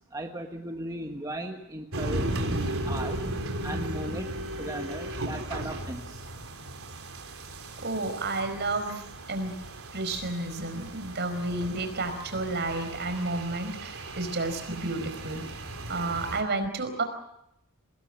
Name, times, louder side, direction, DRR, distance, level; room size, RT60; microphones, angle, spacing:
voice 1, 0.1-3.2 3.6-6.2, right 1 dB, 15° right, 3 dB, 1.5 m, -37 dB
sound 1, 1.9-16.4, right 1 dB, 75° right, 3.9 m, -36 dB
voice 2, 7.8-9.6 9.9-15.4 15.9-17.0, right 2 dB, 55° right, 8 dB, 4.7 m, -31 dB
25.0 x 20.0 x 7.6 m, 0.78 s
head